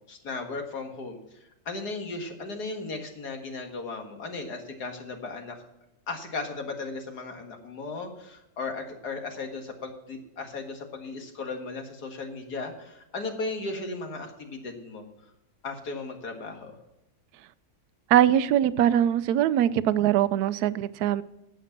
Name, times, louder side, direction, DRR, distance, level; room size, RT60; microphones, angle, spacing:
voice 1, 0.1-1.2 1.7-5.6 6.1-15.3 15.6-16.7, left 3 dB, 70° left, 4 dB, 2.3 m, -36 dB
voice 2, 18.1-21.2, right 11 dB, 75° right, 16 dB, 1.1 m, -22 dB
11.0 x 8.5 x 5.8 m, 0.91 s
omnidirectional pair, 1.8 m